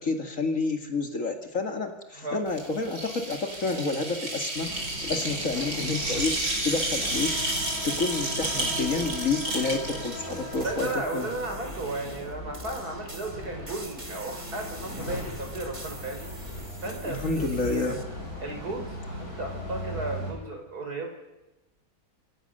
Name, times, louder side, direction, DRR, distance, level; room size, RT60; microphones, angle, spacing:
voice 1, 0.0-4.7 5.0-11.3 17.0-18.0, left 3 dB, 55° left, 5 dB, 2.4 m, -29 dB
sound 1, 2.5-10.9, right 1 dB, 90° right, 5.2 m, -31 dB
sound 2, 4.6-20.3, left 1 dB, 70° left, 8.5 m, -38 dB
sound 3, 10.1-18.0, right 1 dB, 20° right, 2.1 m, -44 dB
voice 2, 10.6-16.3 16.8-18.0 18.4-21.1, right 2 dB, 75° right, 3 dB, 5.5 m, -35 dB
27.0 x 23.5 x 6.7 m, 1.0 s
omnidirectional pair, 1.7 m